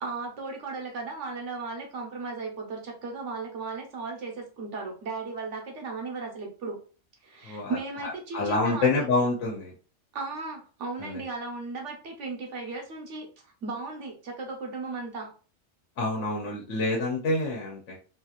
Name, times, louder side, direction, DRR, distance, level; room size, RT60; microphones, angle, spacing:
voice 1, 0.0-6.8 7.2-9.1 10.1-15.3, right 3 dB, 85° right, 1 dB, 1.4 m, -36 dB
voice 2, 7.4-7.8 8.0-9.7 11.0-11.1 16.0-18.0, left 3 dB, 90° left, -2 dB, 1.2 m, -27 dB
4.0 x 2.8 x 2.4 m, 0.37 s
omnidirectional pair, 1.2 m